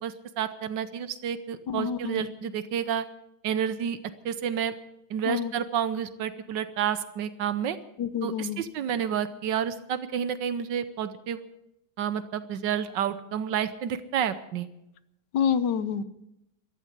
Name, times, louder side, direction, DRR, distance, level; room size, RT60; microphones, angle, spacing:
voice 1, 0.0-3.0 3.4-4.0 4.2-4.7 5.1-7.8 8.2-11.4 12.0-14.7, right 8 dB, 80° right, 12 dB, 1.5 m, -30 dB
voice 2, 1.7-2.2 5.3-5.5 8.0-8.6 15.3-16.0, left 7 dB, 75° left, 14 dB, 1.5 m, -27 dB
14.5 x 12.5 x 8.1 m, 0.85 s
omnidirectional pair, 1.9 m